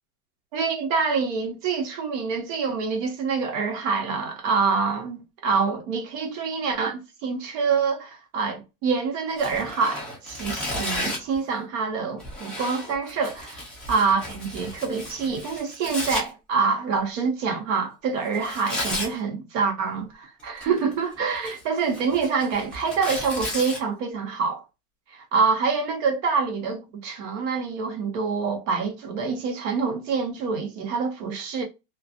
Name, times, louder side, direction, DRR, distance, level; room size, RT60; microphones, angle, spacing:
voice 1, 0.5-24.6 25.1-31.6, right 5 dB, 55° right, 1.0 m, -26 dB
Tearing, 9.3-11.4 12.2-16.2 18.3-19.1 20.4-20.9 21.3-23.8, left 1 dB, ahead, 0.4 m, -33 dB
2.4 x 2.4 x 2.5 m
supercardioid pair, 150°, 46 cm